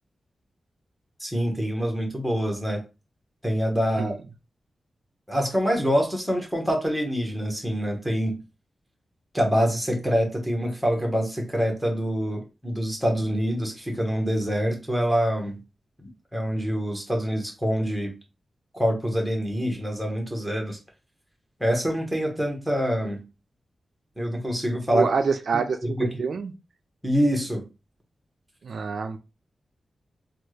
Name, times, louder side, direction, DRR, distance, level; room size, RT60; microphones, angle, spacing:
voice 1, 1.2-2.8 3.4-4.1 5.3-8.4 9.3-15.6 16.3-18.1 18.7-20.8 21.6-23.2 24.2-25.1 25.5-25.6 26.0-26.1 27.0-27.6, equal, 5° right, 1.1 m, -25 dB
voice 2, 24.9-26.5 28.6-29.2, right 5 dB, 65° right, 0.3 m, -26 dB
3.4 x 2.3 x 3.1 m
wide cardioid pair, 120°, 0 cm